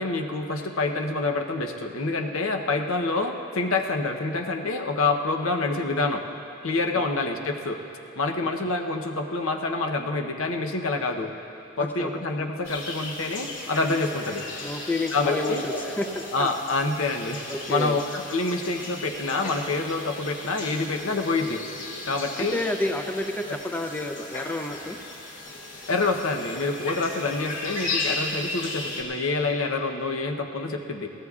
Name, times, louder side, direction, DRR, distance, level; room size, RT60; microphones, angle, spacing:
voice 1, 0.0-6.3 6.6-7.8 8.2-11.3 11.8-14.5 15.1-15.6 16.3-21.6 22.0-22.6 25.9-31.1, left 3 dB, 80° left, 4 dB, 0.9 m, -27 dB
voice 2, 11.8-12.1 14.6-16.5 17.5-18.0 22.4-25.0, left 1 dB, 10° left, 4 dB, 0.5 m, -30 dB
sound 1, 12.6-29.0, left 2 dB, 65° left, 2.4 m, -35 dB
22.0 x 17.0 x 2.4 m, 2.9 s
head